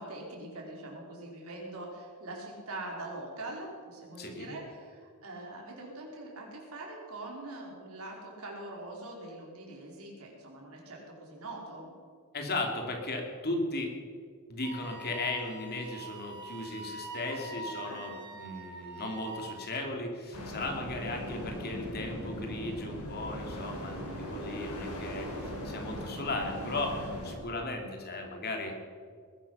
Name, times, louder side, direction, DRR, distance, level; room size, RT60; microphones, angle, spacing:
voice 1, 0.0-11.9 17.3-17.4 17.8-18.3, right 2 dB, 70° right, -2 dB, 4.9 m, -43 dB
voice 2, 4.2-4.5 12.3-13.9 14.5-27.0 27.2-28.7, left 2 dB, 45° left, 2 dB, 2.9 m, -36 dB
Wind instrument woodwind instrument, 14.6-19.7, right 2 dB, 50° right, 3.0 m, -44 dB
sound 1, 20.3-27.3, equal, 85° left, 4.4 m, -39 dB
20.5 x 12.0 x 5.7 m, 2.1 s
head